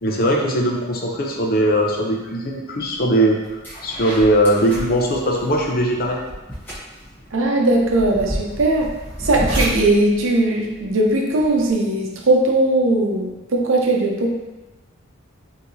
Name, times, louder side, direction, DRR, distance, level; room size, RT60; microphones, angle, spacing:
voice 1, 0.0-6.2, right 1 dB, 50° left, 0 dB, 0.6 m, -20 dB
sound 1, 2.9-3.1 3.4-11.7, equal, 10° left, 1.1 m, -31 dB
voice 2, 7.3-8.9 9.2-14.3, right 2 dB, 75° right, 0 dB, 0.7 m, -19 dB
4.7 x 2.8 x 2.7 m, 1.1 s
head